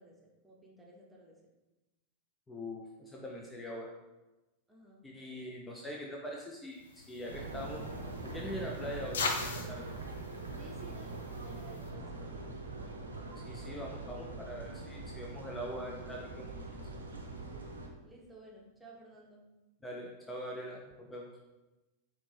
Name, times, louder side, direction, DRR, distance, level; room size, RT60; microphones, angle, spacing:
voice 1, 0.0-1.4 4.7-5.1 10.5-12.5 17.0-17.3 17.5-17.8 18.0-19.5, right 2 dB, 10° right, -3 dB, 1.0 m, -55 dB
voice 2, 2.5-3.9 5.0-7.9 8.2-9.9 13.4-16.5 19.8-21.3, equal, 10° left, -2 dB, 0.6 m, -43 dB
sound 1, 6.8-11.9, left 3 dB, 65° left, 0.5 m, -41 dB
sound 2, 7.3-17.9, right 2 dB, 75° right, 0.7 m, -43 dB
5.1 x 2.8 x 3.3 m, 1.1 s
figure-of-eight pair, 90°, 0 cm